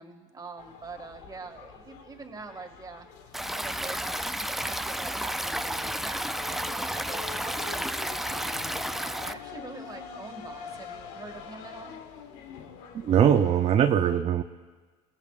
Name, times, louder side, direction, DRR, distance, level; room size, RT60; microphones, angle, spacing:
voice 1, 0.0-3.1 3.5-8.6 9.0-11.9, right 4 dB, 25° right, 5 dB, 2.0 m, -44 dB
sound 1, 0.6-13.7, left 7 dB, 75° left, 1.3 m, -45 dB
Stream, 3.3-9.3, right 1 dB, ahead, 0.4 m, -32 dB
voice 2, 13.0-14.4, right 9 dB, 40° right, 6 dB, 0.7 m, -21 dB
29.5 x 17.0 x 2.5 m, 1.4 s
supercardioid pair, 85°, 17 cm